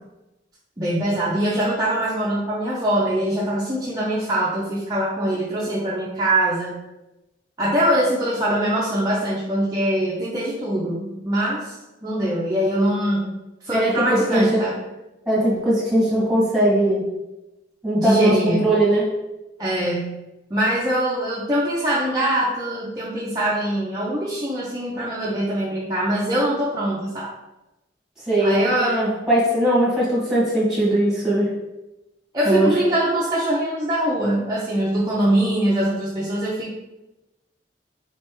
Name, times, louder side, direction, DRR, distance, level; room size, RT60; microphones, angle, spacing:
voice 1, 0.8-6.8 7.6-11.8 12.0-13.3 13.6-14.8 18.0-18.7 19.6-20.2 20.5-27.3 28.4-29.1 32.3-36.7, right 1 dB, 20° right, -6 dB, 0.5 m, -23 dB
voice 2, 13.7-14.6 15.2-17.1 17.8-19.1 28.3-31.5 32.4-32.7, right 1 dB, 5° right, -7 dB, 1.4 m, -20 dB
4.1 x 3.4 x 2.9 m, 0.98 s
head